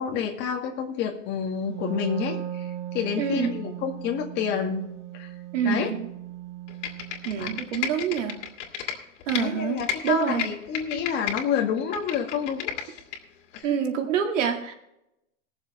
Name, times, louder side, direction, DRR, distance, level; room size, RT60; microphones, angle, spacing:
voice 1, 0.0-4.8 5.1-5.3 5.6-5.9 7.4-7.5 9.3-13.0 13.5-13.7, left 7 dB, 30° left, 2 dB, 2.0 m, -29 dB
Wind instrument woodwind instrument, 1.6-7.3, right 11 dB, 45° right, 4.0 m, -37 dB
voice 2, 3.2-3.5 5.5-6.1 7.2-8.4 9.3-10.5 13.6-14.7, right 8 dB, 80° right, 4 dB, 2.1 m, -26 dB
Computer keyboard, 6.7-9.4 9.8-11.4 11.8-13.2 13.6-13.7, left 8 dB, 70° left, 2.5 m, -32 dB
19.0 x 7.1 x 4.2 m, 0.84 s
supercardioid pair, 160°, 36 cm